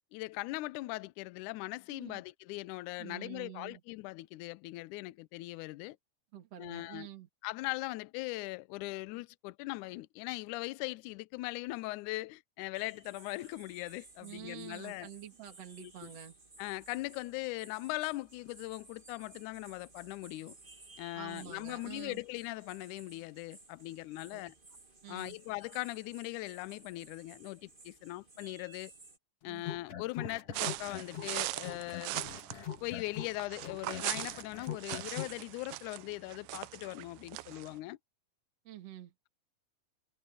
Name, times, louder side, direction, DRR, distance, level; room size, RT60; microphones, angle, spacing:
voice 1, 0.1-6.0 6.6-7.1 7.4-15.1 15.8-16.1 16.6-20.6 21.0-24.6 25.1-28.9 29.4-32.2 32.8-38.0, left 20 dB, 80° left, 1.8 m, -40 dB
voice 2, 1.9-2.2 3.0-3.8 6.3-7.3 14.2-16.3 21.1-22.2 24.3-24.4 25.0-25.4 29.4-29.6 38.6-39.1, right 11 dB, 50° right, 3.2 m, -48 dB
sound 1, 12.7-29.2, right 3 dB, 20° right, 1.8 m, -57 dB
sound 2, 29.6-31.4 31.6-35.4, left 9 dB, 45° left, 3.1 m, -42 dB
sound 3, 30.5-37.7, right 18 dB, 80° right, 2.2 m, -40 dB
omnidirectional pair, 4.1 m